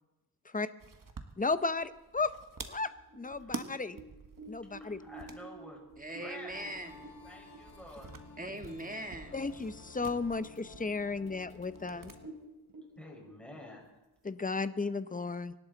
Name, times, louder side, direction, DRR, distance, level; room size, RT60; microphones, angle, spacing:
sound 1, 0.8-12.2 12.5-12.6 13.8-14.5, right 4 dB, 55° right, 1.3 m, -49 dB
voice 1, 1.4-2.3 2.7-4.0 4.5-5.0 8.4-8.5 9.3-12.1 14.2-15.5, left 4 dB, 20° left, 13 dB, 0.7 m, -34 dB
sound 2, 2.8-8.7 9.0-9.1 9.5-10.1 10.5-10.6 11.2-11.3 11.6-11.8 12.1-13.3, right 2 dB, 75° right, 3.6 m, -51 dB
voice 2, 4.8-5.8 6.1-6.5 6.9-8.2 13.0-14.0, left 1 dB, 5° left, -1 dB, 5.1 m, -49 dB
voice 3, 6.0-7.1 8.4-9.5, right 1 dB, 20° right, 5 dB, 1.7 m, -41 dB
sound 3, 6.5-12.3, left 4 dB, 70° left, 1.9 m, -53 dB
25.0 x 12.0 x 4.0 m, 1.1 s
wide cardioid pair, 80°, 38 cm